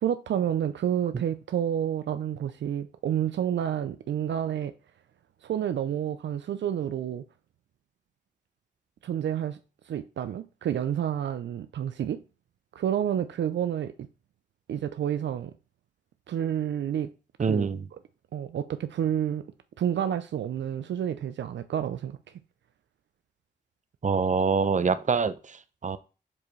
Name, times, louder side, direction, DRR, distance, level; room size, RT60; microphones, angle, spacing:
voice 1, 0.0-4.7 5.4-7.2 9.0-9.6 9.9-12.2 12.8-13.9 14.7-15.5 16.3-17.1 17.5-17.7 18.3-19.4 19.8-22.2, right 9 dB, 75° right, 0.5 m, -29 dB
voice 2, 17.4-17.9 24.0-26.0, right 5 dB, 40° right, 0.7 m, -25 dB
7.3 x 4.7 x 3.2 m
cardioid pair, 50°, 19 cm